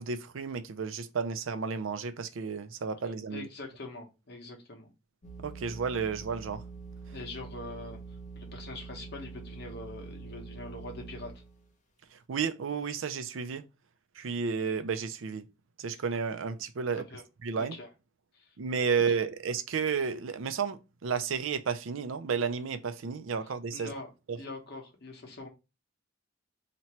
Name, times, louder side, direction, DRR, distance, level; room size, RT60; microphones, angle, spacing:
voice 1, 0.0-3.5 5.4-6.6 12.3-13.6 14.2-15.5 15.8-17.0 17.4-17.8 18.6-23.9 24.3-24.4, right 6 dB, 90° right, 0.5 m, -32 dB
voice 2, 3.3-4.9 7.1-8.0 8.3-11.3 16.8-17.2 17.5-17.9 18.3-18.5 23.7-24.1 24.3-25.5, left 2 dB, 60° left, 1.2 m, -43 dB
sound 1, 5.2-11.7, right 4 dB, 40° left, 0.8 m, -45 dB
2.9 x 2.9 x 4.4 m
head